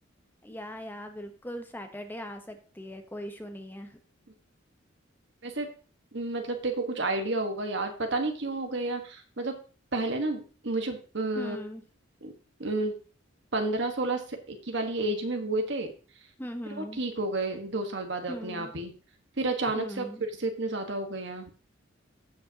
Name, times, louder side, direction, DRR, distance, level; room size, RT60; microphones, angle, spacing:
voice 1, 0.4-4.0 11.4-11.8 16.4-17.0 18.3-18.7 19.7-20.3, equal, 10° left, 6 dB, 0.9 m, -40 dB
voice 2, 6.1-9.5 9.9-11.6 12.2-12.3 12.6-13.0 13.5-15.9 16.7-18.9 19.4-20.1 20.4-21.5, right 2 dB, 60° right, 5 dB, 1.4 m, -31 dB
16.0 x 5.3 x 2.8 m, 0.37 s
head